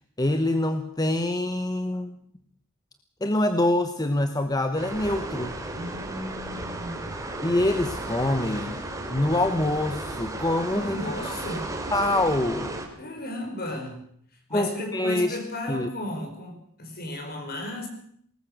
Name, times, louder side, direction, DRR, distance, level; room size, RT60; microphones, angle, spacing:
voice 1, 0.2-2.2 3.2-5.6 7.4-8.8 9.1-11.0 11.9-12.8 14.5-15.4 15.7-15.9, left 1 dB, 20° left, 8 dB, 1.1 m, -25 dB
sound 1, 4.8-12.9, right 2 dB, 15° right, 3.2 m, -34 dB
voice 2, 5.8-7.1 10.7-11.7 13.0-14.0 14.5-17.9, left 1 dB, 45° left, 4 dB, 5.2 m, -34 dB
21.0 x 19.0 x 6.6 m, 0.65 s
head